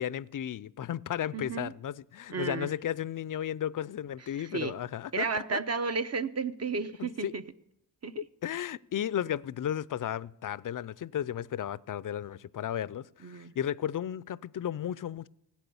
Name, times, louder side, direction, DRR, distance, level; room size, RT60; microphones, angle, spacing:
voice 1, 0.0-5.6 7.0-7.3 8.4-15.3, left 10 dB, 50° left, 0.5 m, -34 dB
voice 2, 1.3-1.7 2.3-2.7 4.4-4.7 5.1-7.4 8.0-8.1 13.2-13.5, right 4 dB, 35° right, 0.8 m, -33 dB
16.0 x 8.5 x 7.0 m
cardioid pair, 55°, 43 cm